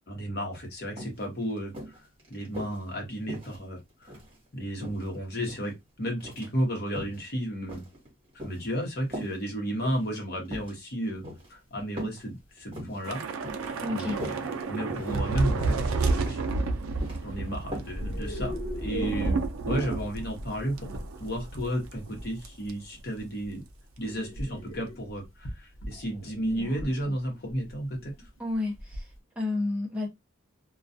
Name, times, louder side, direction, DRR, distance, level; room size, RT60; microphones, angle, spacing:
voice 1, 0.1-4.2 4.5-7.9 8.4-11.2 11.5-13.2 13.9-14.3 14.7-16.4 17.2-20.9 21.2-23.6 24.0-28.1, equal, 50° left, 0.9 m, -33 dB
sound 1, 0.5-0.6 1.0-1.2 1.7-2.8 3.3-4.4 4.8-5.7 6.2-6.5 6.9-7.2 7.7-8.7 9.1-9.4 9.8-10.1 10.5-10.7 11.2-11.5 12.0-12.2 12.6-13.0 13.4-13.7 14.0-14.4 14.9-15.2 15.6-15.8 16.3-16.5 16.8-17.2 17.7-17.9 18.3-18.4, equal, 25° right, 1.1 m, -39 dB
sound 2, 11.1-11.2 11.7-11.9 12.6-12.7 13.6-14.3 15.6-15.7 16.1-16.4 17.9-29.2, equal, 85° left, 0.9 m, -39 dB
Thunder / Rain, 13.0-21.6 21.9-22.1 22.4-22.7, right 3 dB, 90° right, 0.4 m, -31 dB
voice 2, 13.8-14.2 28.4-30.1, left 2 dB, 5° right, 0.8 m, -31 dB
2.3 x 2.2 x 2.6 m
head